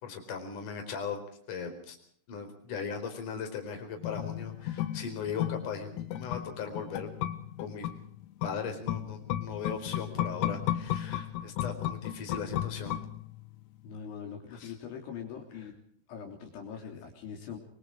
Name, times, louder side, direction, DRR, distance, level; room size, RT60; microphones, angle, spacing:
voice 1, 0.0-1.2 1.5-2.0 2.3-7.1 7.6-7.9 8.4-13.0 14.5-14.7, left 6 dB, 40° left, 5 dB, 5.4 m, -38 dB
sound 1, 4.0-13.6 13.9-14.0, left 12 dB, 80° left, 4.0 m, -34 dB
voice 2, 13.8-15.7 16.1-17.6, left 7 dB, 65° left, 1 dB, 5.5 m, -42 dB
25.0 x 24.0 x 4.8 m, 0.62 s
omnidirectional pair, 5.9 m